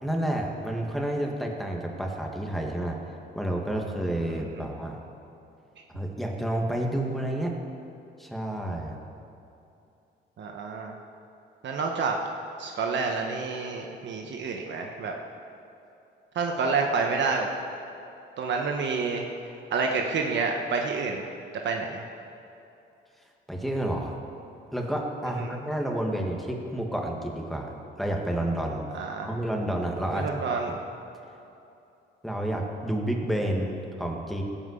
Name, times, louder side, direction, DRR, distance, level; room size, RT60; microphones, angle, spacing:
voice 1, 0.0-5.0 5.9-7.5 8.2-9.0 23.5-24.1 24.7-28.9 29.2-30.7 32.2-34.4, right 1 dB, ahead, 0 dB, 2.0 m, -30 dB
voice 2, 10.4-10.9 11.6-12.2 12.6-15.1 16.3-17.5 18.4-19.3 19.7-21.2 21.6-22.0 25.3-25.5 28.9-29.3 30.1-30.7, right 4 dB, 65° right, 2 dB, 1.2 m, -28 dB
16.5 x 5.8 x 8.3 m, 2.8 s
cardioid pair, 90°, 20 cm